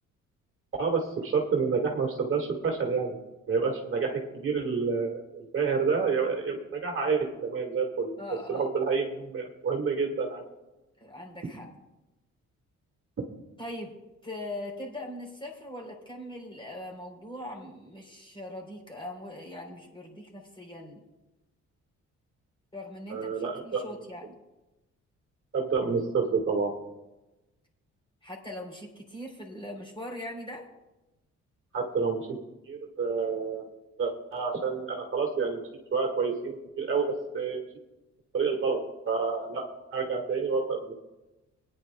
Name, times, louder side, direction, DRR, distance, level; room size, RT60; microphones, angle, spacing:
voice 1, 0.8-3.2 3.5-8.1 8.5-10.4 23.1-23.8 25.5-26.7 31.7-32.4 32.7-33.6 34.0-35.6 35.9-37.7 38.3-38.8 39.1-39.6 39.9-40.9, right 5 dB, 45° right, 0 dB, 1.8 m, -28 dB
voice 2, 8.2-8.7 11.0-11.7 13.6-13.9 14.2-21.0 22.7-24.3 28.2-30.7, left 1 dB, 15° left, -1 dB, 3.6 m, -41 dB
22.5 x 9.8 x 2.3 m, 1.0 s
cardioid pair, 90°, 30 cm